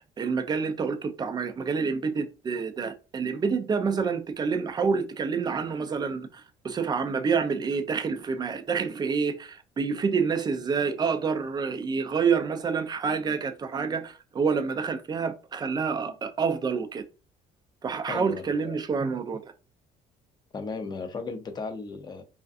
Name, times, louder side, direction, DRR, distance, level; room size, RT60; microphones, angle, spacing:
voice 1, 0.2-17.0 17.8-19.5, right 5 dB, 25° right, 0.4 m, -28 dB
voice 2, 18.1-18.8 20.5-22.2, left 4 dB, 25° left, 0.5 m, -36 dB
2.5 x 2.2 x 2.4 m
cardioid pair, 110°, 17 cm